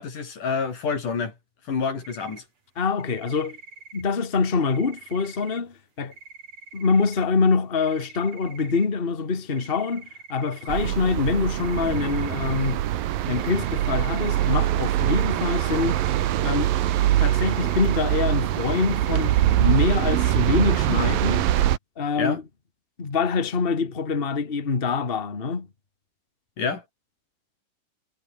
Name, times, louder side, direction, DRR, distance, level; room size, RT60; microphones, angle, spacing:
voice 1, 0.0-1.3 1.7-2.4 22.2-22.4 26.6-26.8, left 5 dB, 55° left, 5.7 m, -27 dB
sound 1, 2.0-2.4 3.0-4.0 4.6-5.6 6.1-7.2 7.8-8.9 9.5-10.9 11.6-12.7 13.3-14.5 15.0-16.3 16.7-18.0 18.5-19.6 20.1-20.4, right 4 dB, 40° right, 6.2 m, -45 dB
voice 2, 2.7-3.6 3.9-6.1 6.7-12.8 13.3-16.0 16.4-16.7 17.2-21.4 22.0-22.4 23.0-25.7, left 4 dB, 30° left, 1.0 m, -25 dB
sound 2, 10.7-21.8, right 13 dB, 65° right, 2.8 m, -23 dB
omnidirectional pair, 4.6 m